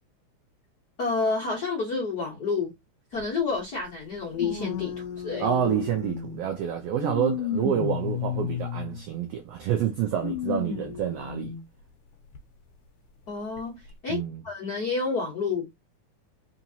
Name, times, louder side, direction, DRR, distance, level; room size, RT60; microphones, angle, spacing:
voice 1, 1.0-2.7 3.1-5.5 13.3-13.8 14.0-15.6, left 4 dB, 55° left, 1.1 m, -29 dB
sound 1, 3.2-3.3 4.4-6.4 7.0-9.0 10.2-11.6 12.3-12.4 13.6-13.7, left 7 dB, 85° left, 1.2 m, -32 dB
voice 2, 5.4-11.5 14.1-14.4, right 9 dB, 85° right, 1.4 m, -28 dB
4.6 x 3.0 x 2.7 m
omnidirectional pair, 3.6 m